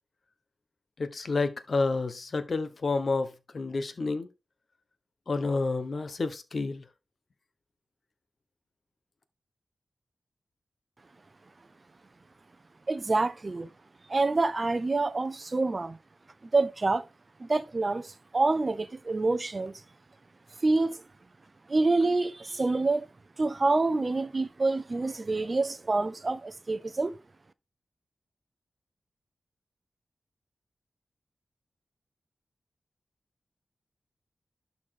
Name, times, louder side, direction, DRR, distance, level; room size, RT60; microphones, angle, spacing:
voice 1, 1.0-4.3 5.3-6.8, left 3 dB, 50° left, 1.1 m, -29 dB
voice 2, 12.9-13.7 14.1-16.0 16.5-17.0 17.4-19.8 20.6-21.0 21.7-23.1 23.4-27.2, right 3 dB, 35° right, 0.7 m, -27 dB
11.5 x 4.2 x 3.7 m
wide cardioid pair, 120°, 0 cm